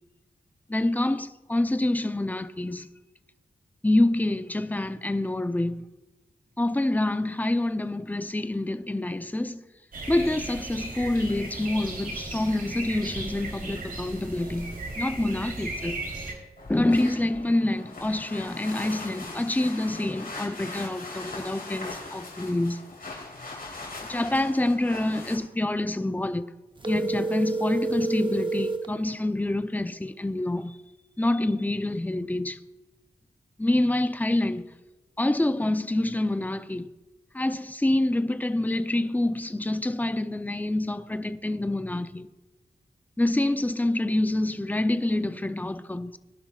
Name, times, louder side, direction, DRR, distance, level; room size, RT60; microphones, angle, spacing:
voice 1, 0.7-2.9 3.8-5.9 6.6-9.6 10.1-16.0 16.7-22.8 24.1-26.5 26.9-30.8 31.2-32.6 33.6-34.7 35.2-36.9 37.3-42.3 43.2-46.2, left 1 dB, 10° left, 0.6 m, -27 dB
sound 1, 9.9-16.3, right 2 dB, 60° right, 3.6 m, -36 dB
sound 2, 16.6-25.4, left 3 dB, 60° left, 4.9 m, -40 dB
sound 3, 26.8-28.9, right 2 dB, 30° right, 0.9 m, -28 dB
22.0 x 11.5 x 2.4 m
wide cardioid pair, 95°, 17 cm